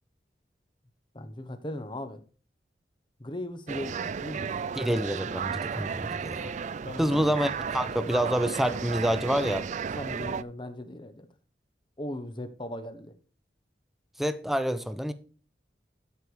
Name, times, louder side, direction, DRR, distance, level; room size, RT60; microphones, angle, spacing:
voice 1, 1.1-2.2 3.2-4.7 6.8-7.3 10.0-11.3 12.0-13.1, left 1 dB, 25° left, 1.2 m, -38 dB
sound 1, 3.7-10.4, right 6 dB, 40° right, 0.4 m, -34 dB
voice 2, 4.8-6.5 7.0-9.7 14.2-15.1, equal, ahead, 0.7 m, -27 dB
12.0 x 5.2 x 4.7 m
head